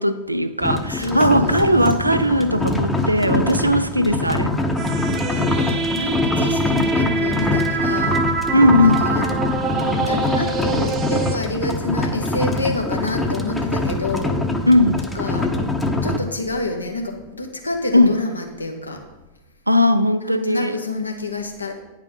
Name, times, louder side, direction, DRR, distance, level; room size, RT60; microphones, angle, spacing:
voice 1, 0.0-4.5 8.5-9.1 14.7-15.0 17.9-18.1 19.7-20.8, left 1 dB, 85° right, 0.4 m, -18 dB
sound 1, 0.6-16.2, left 2 dB, 5° left, 0.8 m, -23 dB
voice 2, 0.9-2.1 2.5-2.8 5.0-8.2 8.8-9.2 10.0-14.4 15.0-15.5 16.0-19.0 20.2-21.7, left 2 dB, 80° left, 1.2 m, -28 dB
sound 2, 4.8-11.4, right 4 dB, 30° right, 0.7 m, -25 dB
9.7 x 4.8 x 5.5 m
figure-of-eight pair, 90°, 0 cm